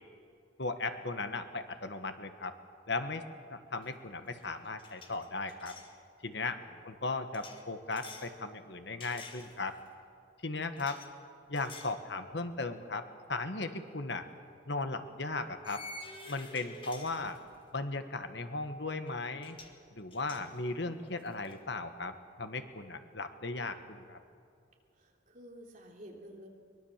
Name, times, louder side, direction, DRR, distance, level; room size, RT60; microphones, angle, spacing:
voice 1, 0.6-2.5 2.9-3.2 3.5-5.8 6.2-6.6 6.8-9.8 10.4-11.0 11.5-14.2 14.7-15.8 16.3-17.4 17.7-19.6 19.9-24.2, left 3 dB, 60° left, 8 dB, 1.4 m, -37 dB
sound 1, 3.8-4.1 4.3-5.9 7.3-8.3 9.0-9.9 10.8-11.1 11.6-12.0 12.5-12.6 14.2-14.3 15.6-17.7 19.1-19.2 19.4-19.8 20.1-21.6, left 2 dB, 25° left, 1.9 m, -50 dB
voice 2, 6.5-7.0 24.9-26.5, equal, 40° right, 0 dB, 3.2 m, -52 dB
23.0 x 22.0 x 7.4 m, 2.4 s
head